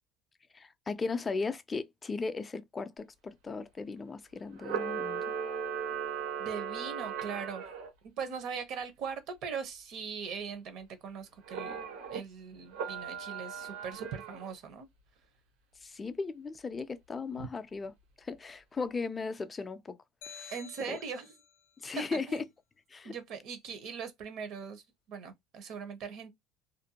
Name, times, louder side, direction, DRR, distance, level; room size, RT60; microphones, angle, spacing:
voice 1, 0.5-5.2 15.8-20.0 20.2-20.5 20.9-21.0 21.8-22.4 22.9-23.1, left 4 dB, 20° left, 0.4 m, -37 dB
Camera, 4.6-7.9 11.5-12.2 12.7-14.5, right 7 dB, 90° right, 1.3 m, -37 dB
voice 2, 6.4-7.6 8.0-11.8 12.1-14.9 17.4-17.5 20.5-21.3 22.1-22.4 23.0-26.3, right 6 dB, 60° right, 0.7 m, -40 dB
sound 1, 20.2-21.6, left 7 dB, 80° left, 0.4 m, -49 dB
2.5 x 2.1 x 2.8 m
cardioid pair, 125°, 0 cm